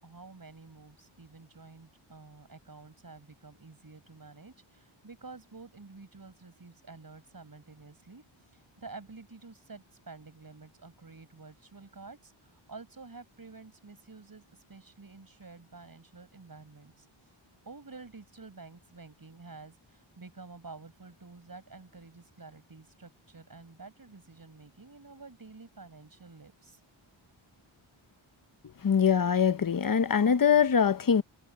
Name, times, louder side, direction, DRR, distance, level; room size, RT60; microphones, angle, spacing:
voice 1, 0.0-8.2 8.5-17.1 17.7-26.8, right 3 dB, 45° right, 7.7 m, -50 dB
voice 2, 28.8-31.2, left 7 dB, 40° left, 0.9 m, -23 dB
wide cardioid pair, 105°, 50 cm